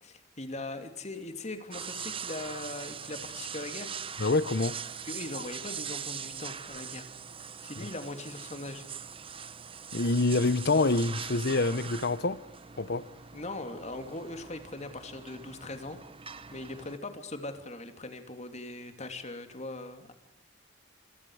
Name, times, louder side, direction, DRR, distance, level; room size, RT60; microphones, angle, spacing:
voice 1, 0.0-3.9 5.1-7.1 7.4-8.8 13.3-16.0 16.5-20.1, left 2 dB, 35° left, 3.0 m, -40 dB
sound 1, 1.7-17.0, right 7 dB, 30° right, 1.0 m, -42 dB
voice 2, 4.2-4.8 9.9-12.4 12.8-13.1, left 3 dB, 60° left, 1.0 m, -26 dB
27.0 x 27.0 x 4.9 m
head